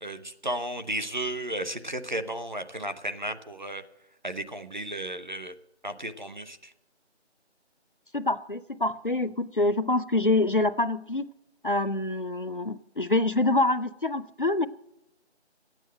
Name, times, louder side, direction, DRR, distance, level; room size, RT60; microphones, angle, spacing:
voice 1, 0.0-3.8 4.2-5.5 5.8-6.7, right 1 dB, 45° right, 9 dB, 0.8 m, -34 dB
voice 2, 8.1-11.3 11.6-14.7, left 2 dB, 50° left, 14 dB, 0.5 m, -26 dB
12.5 x 9.1 x 7.5 m, 0.86 s
figure-of-eight pair, 175°, 34 cm